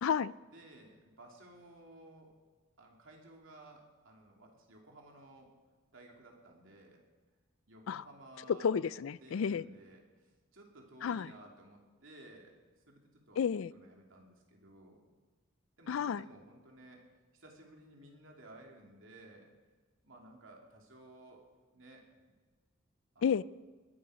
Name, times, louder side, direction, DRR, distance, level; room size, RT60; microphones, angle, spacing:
voice 1, 0.0-0.3 7.9-8.0 8.6-9.7 11.0-11.3 13.4-13.7 15.9-16.2 23.2-23.4, left 7 dB, 75° left, 20 dB, 0.4 m, -31 dB
voice 2, 0.5-2.4 2.8-5.6 5.9-7.0 7.7-8.8 9.2-13.4 13.7-15.0 15.8-17.1 17.3-19.7 20.0-22.2 23.1-23.4, right 1 dB, 70° right, 1 dB, 2.9 m, -56 dB
21.0 x 11.0 x 5.0 m, 1.3 s
head